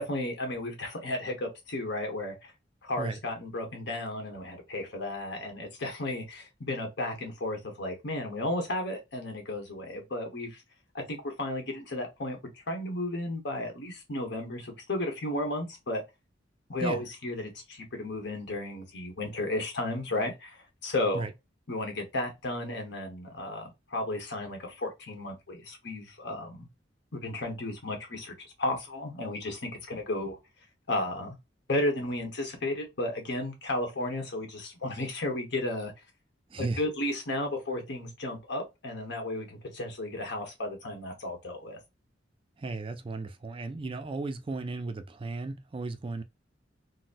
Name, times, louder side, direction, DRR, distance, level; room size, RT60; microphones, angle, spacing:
voice 1, 0.0-2.5 2.8-10.6 10.9-12.4 12.7-16.0 16.7-21.2 21.7-26.7 27.1-30.4 30.9-31.4 31.7-35.9 36.6-41.8, left 1 dB, 65° left, 1.2 m, -33 dB
voice 2, 36.5-36.8 42.6-46.2, right 3 dB, 30° right, 0.4 m, -35 dB
3.9 x 2.1 x 2.5 m
head